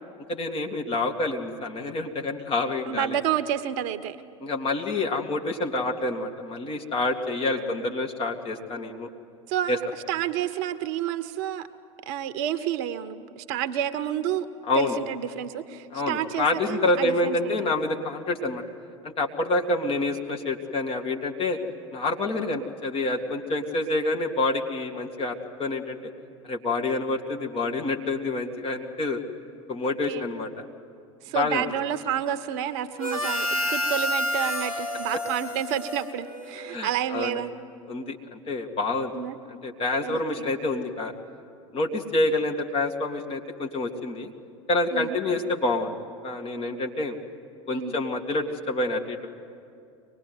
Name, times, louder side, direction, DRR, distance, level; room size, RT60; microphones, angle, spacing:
voice 1, 0.3-3.2 4.4-9.1 9.7-9.8 14.7-15.0 15.9-18.6 19.0-21.6 21.9-26.0 26.4-29.2 29.7-30.6 31.3-31.6 36.7-37.4 37.9-39.1 39.5-41.1 41.7-44.3 44.7-46.0 46.2-47.2 47.7-49.3, left 2 dB, 35° left, 2 dB, 2.1 m, -27 dB
voice 2, 2.9-4.2 7.3-7.8 9.5-11.6 12.0-14.5 14.8-17.7 22.4-22.6 29.8-30.3 31.2-37.6 39.1-39.4 40.0-40.5 44.9-45.2 47.7-48.0, right 10 dB, 55° right, 13 dB, 1.0 m, -30 dB
Harmonica, 33.0-36.8, equal, 90° left, 1.8 m, -29 dB
24.0 x 20.0 x 9.5 m, 2.5 s
figure-of-eight pair, 75°, 17 cm